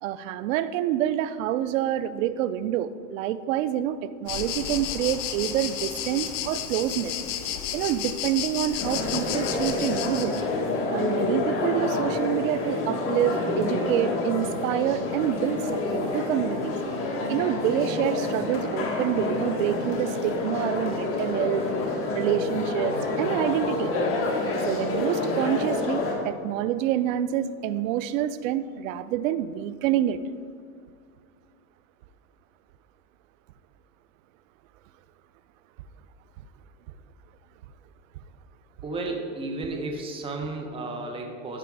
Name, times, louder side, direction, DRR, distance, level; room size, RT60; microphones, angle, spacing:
voice 1, 0.0-10.3 10.9-16.8 17.3-21.6 22.1-23.9 24.7-30.2, right 11 dB, 80° right, 15 dB, 0.6 m, -27 dB
sound 1, 4.3-10.4, left 10 dB, 70° left, 0.9 m, -32 dB
sound 2, 8.8-26.1, left 2 dB, 35° left, 1.7 m, -28 dB
voice 2, 38.8-41.6, right 2 dB, 15° right, 2 dB, 0.8 m, -33 dB
13.5 x 5.0 x 4.7 m, 2.1 s
supercardioid pair, 145°, 39 cm